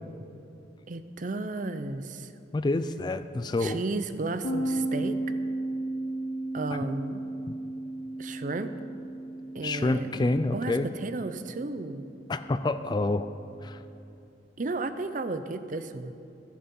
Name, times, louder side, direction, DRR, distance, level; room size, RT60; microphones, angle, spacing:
voice 1, 0.9-2.3 3.6-5.2 6.5-7.2 8.2-8.7 9.5-10.1 10.5-12.1 14.6-16.1, right 3 dB, 45° right, 11 dB, 0.6 m, -33 dB
voice 2, 2.5-3.8 6.7-6.8 9.6-10.9 12.3-13.3 13.6-13.8, left 2 dB, 25° left, 11 dB, 0.3 m, -28 dB
sound 1, 4.4-13.9, right 1 dB, 80° left, 1.0 m, -35 dB
13.5 x 10.0 x 5.5 m, 2.7 s
head